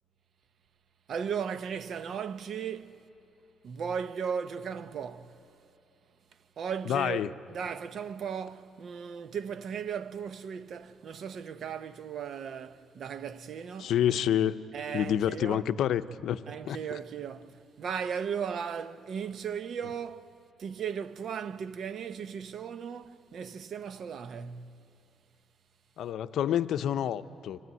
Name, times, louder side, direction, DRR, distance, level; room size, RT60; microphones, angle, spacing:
voice 1, 1.1-3.1 3.6-5.6 6.6-7.2 7.5-13.9 14.7-15.6 16.5-24.8, right 7 dB, 60° right, 0.8 m, -36 dB
voice 2, 6.9-7.3 13.8-14.7 14.9-16.4 16.7-16.8 26.0-27.6, left 10 dB, 75° left, 0.6 m, -28 dB
25.5 x 15.5 x 9.5 m
cardioid pair, 90°, 0 cm